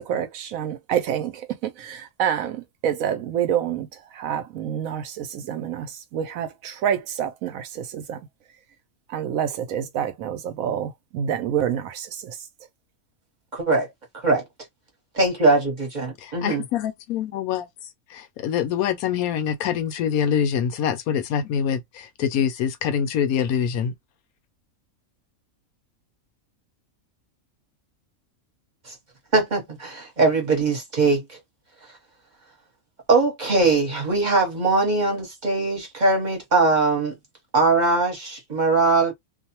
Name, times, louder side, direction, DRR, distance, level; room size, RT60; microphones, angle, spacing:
voice 1, 0.0-3.9 4.1-8.2 9.1-12.4, right 9 dB, 75° right, 1.0 m, -27 dB
voice 2, 13.5-13.9 14.1-14.4 15.1-16.6 28.8-28.9 29.3-31.4 33.1-37.2 37.5-39.1, right 3 dB, 35° right, 1.0 m, -21 dB
voice 3, 16.2-17.7 18.1-23.9, left 8 dB, 80° left, 1.0 m, -25 dB
2.6 x 2.1 x 2.8 m
omnidirectional pair, 1.5 m